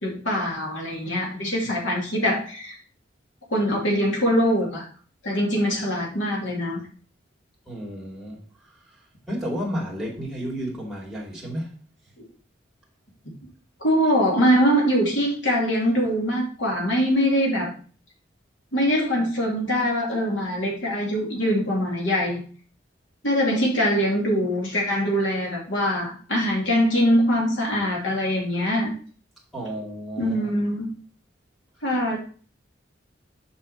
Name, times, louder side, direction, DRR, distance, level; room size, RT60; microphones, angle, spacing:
voice 1, 0.0-2.7 3.5-4.8 5.2-6.8 13.8-17.7 18.7-22.4 23.2-28.9 30.2-30.9 31.8-32.2, equal, 85° left, -2 dB, 2.7 m, -23 dB
voice 2, 7.7-8.4 9.3-11.7 29.5-30.5, equal, ahead, -4 dB, 2.4 m, -32 dB
6.4 x 5.7 x 4.2 m, 0.42 s
head